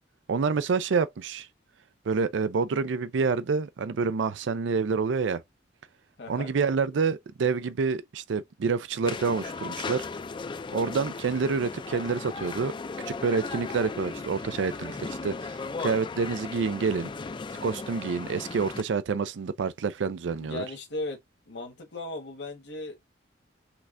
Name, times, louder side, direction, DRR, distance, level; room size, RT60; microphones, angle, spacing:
voice 1, 0.3-1.5 2.1-5.4 6.3-10.1 10.7-12.8 13.1-17.1 17.6-20.6, right 5 dB, 90° right, 0.4 m, -28 dB
voice 2, 6.2-6.5 20.4-21.2 21.5-23.0, left 2 dB, 65° left, 1.4 m, -37 dB
sound 1, 9.0-18.8, left 4 dB, 25° left, 0.4 m, -36 dB
5.9 x 3.3 x 2.5 m
head